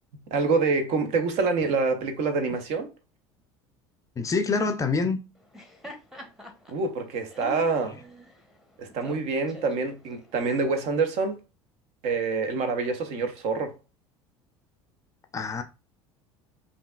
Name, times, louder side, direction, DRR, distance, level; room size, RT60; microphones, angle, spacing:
voice 1, 0.3-2.9 6.7-8.0 8.8-11.4 12.0-13.7, right 4 dB, 50° right, 0.8 m, -26 dB
voice 2, 4.2-5.2 15.3-15.6, left 4 dB, 20° left, 0.5 m, -25 dB
Laughter, 5.4-10.6, equal, ahead, 0.9 m, -46 dB
5.0 x 2.7 x 2.3 m
figure-of-eight pair, 65°, 15 cm